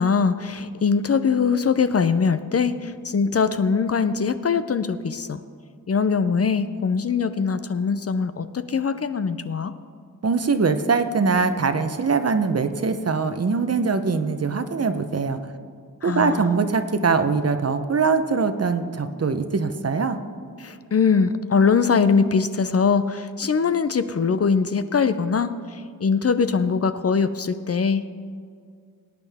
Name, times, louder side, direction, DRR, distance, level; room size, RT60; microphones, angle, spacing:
voice 1, 0.0-5.4 5.9-9.7 16.0-16.5 20.6-28.1, left 5 dB, 45° left, 11 dB, 0.5 m, -22 dB
voice 2, 10.2-15.4 16.0-20.2, right 4 dB, 45° right, 9 dB, 0.8 m, -22 dB
18.5 x 9.1 x 3.5 m, 2.2 s
cardioid pair, 65°, 36 cm